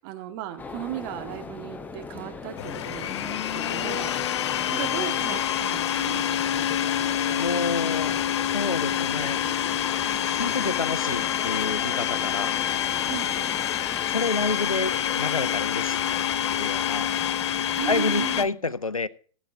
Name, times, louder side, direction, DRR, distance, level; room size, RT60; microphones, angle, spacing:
voice 1, 0.0-4.1 4.7-6.4 13.1-13.7 17.8-18.7, right 12 dB, 40° right, 1.8 m, -36 dB
sound 1, 0.6-18.5, left 4 dB, 10° left, 0.7 m, -40 dB
Domestic sounds home sounds, 2.6-18.4, left 10 dB, 55° left, 0.5 m, -27 dB
voice 2, 7.4-8.1 8.5-9.4 10.3-12.5 14.1-17.1 17.9-19.1, left 3 dB, 90° left, 0.6 m, -29 dB
16.0 x 8.3 x 4.8 m
figure-of-eight pair, 110°, 17 cm